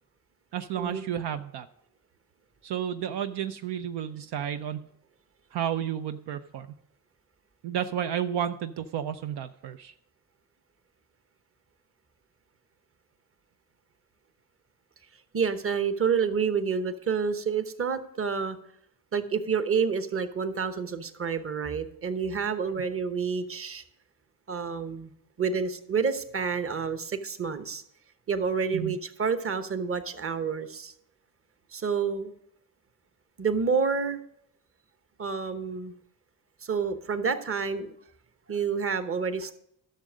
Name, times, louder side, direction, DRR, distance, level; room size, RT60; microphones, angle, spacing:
voice 1, 0.5-1.7 2.6-4.9 5.5-6.7 7.6-9.9 28.7-29.0, right 9 dB, 70° right, 9 dB, 0.6 m, -32 dB
voice 2, 15.3-18.6 19.1-23.8 24.5-25.1 25.4-27.8 28.3-30.9 31.7-32.3 33.4-34.2 35.2-35.9 36.6-37.9 38.5-39.5, right 6 dB, 30° right, 11 dB, 1.0 m, -29 dB
11.5 x 6.5 x 5.0 m, 0.75 s
supercardioid pair, 65°, 42 cm